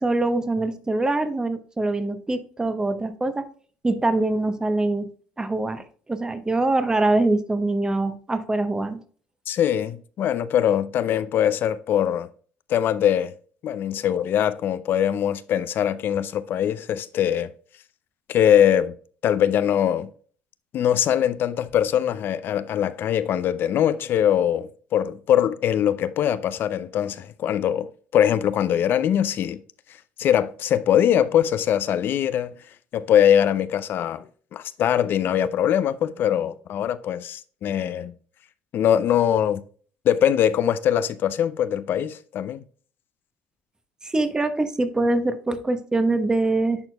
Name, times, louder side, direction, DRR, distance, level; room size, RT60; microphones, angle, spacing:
voice 1, 0.0-3.5 3.8-5.1 5.4-9.0 44.0-46.8, right 2 dB, 15° right, 1.0 m, -24 dB
voice 2, 9.5-12.3 12.7-13.3 13.6-17.5 18.3-18.9 19.2-20.1 20.7-29.6 30.2-32.5 32.9-34.3 34.5-38.1 38.7-39.6 40.0-42.6, left 10 dB, 55° left, 0.5 m, -22 dB
10.5 x 4.4 x 2.3 m
supercardioid pair, 70°, 4 cm